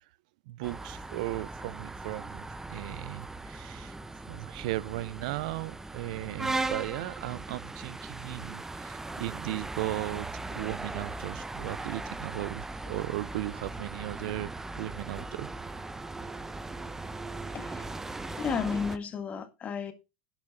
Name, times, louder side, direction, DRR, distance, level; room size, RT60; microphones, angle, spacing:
voice 1, 0.5-4.0 4.3-15.5, right 18 dB, 75° right, 0.6 m, -36 dB
sound 1, 0.6-19.0, right 2 dB, 10° right, 0.9 m, -39 dB
voice 2, 17.5-17.9 18.2-19.9, left 6 dB, 35° left, 2.0 m, -33 dB
11.5 x 5.8 x 5.4 m
supercardioid pair, 110°, 4 cm